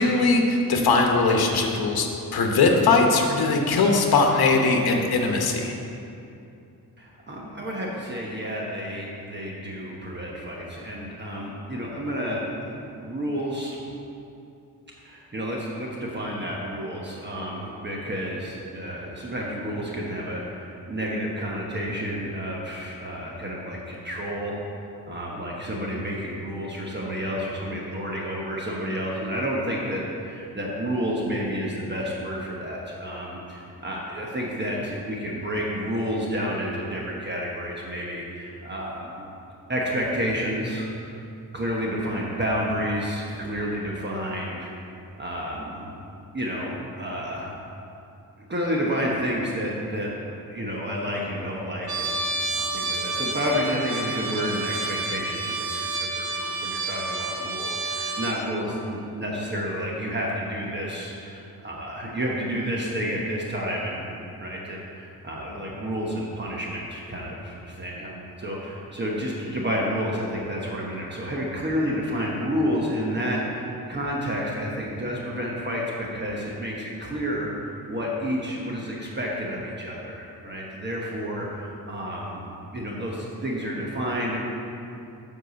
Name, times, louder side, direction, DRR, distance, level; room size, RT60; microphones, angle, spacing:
voice 1, 0.0-5.7, left 3 dB, 85° left, 2 dB, 0.9 m, -20 dB
voice 2, 7.0-13.8 15.0-24.6 25.1-39.2 39.7-41.2 41.5-44.7 45.2-46.0 46.3-47.5 48.4-50.1 50.5-84.4, equal, 30° right, -3 dB, 1.0 m, -30 dB
Trumpet, 51.9-58.4, right 3 dB, 85° right, 1.0 m, -30 dB
7.6 x 4.8 x 6.8 m, 2.7 s
wide cardioid pair, 135°, 36 cm